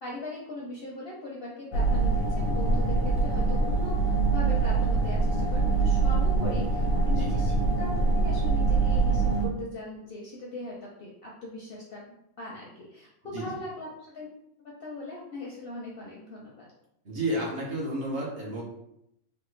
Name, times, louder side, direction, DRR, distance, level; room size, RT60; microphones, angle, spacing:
voice 1, 0.0-12.0 12.4-14.3 14.6-16.7, left 2 dB, 60° left, -3 dB, 0.6 m, -40 dB
sound 1, 1.7-9.5, right 3 dB, 85° left, 1.0 m, -24 dB
voice 2, 13.2-13.6 17.0-18.6, right 1 dB, 55° right, -4 dB, 0.9 m, -32 dB
3.2 x 2.1 x 3.1 m, 0.79 s
omnidirectional pair, 1.4 m